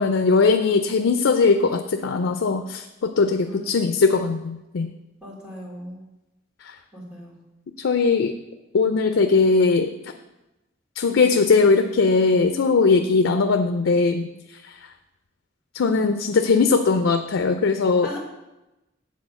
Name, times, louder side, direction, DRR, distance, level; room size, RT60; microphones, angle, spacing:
voice 1, 0.0-4.9 7.8-8.3 8.7-9.9 11.0-14.3 15.7-18.1, left 4 dB, 90° left, 7 dB, 0.5 m, -19 dB
voice 2, 5.2-6.0 6.9-7.3 18.0-18.2, left 1 dB, 5° right, -6 dB, 2.5 m, -38 dB
8.4 x 4.2 x 6.5 m, 0.99 s
head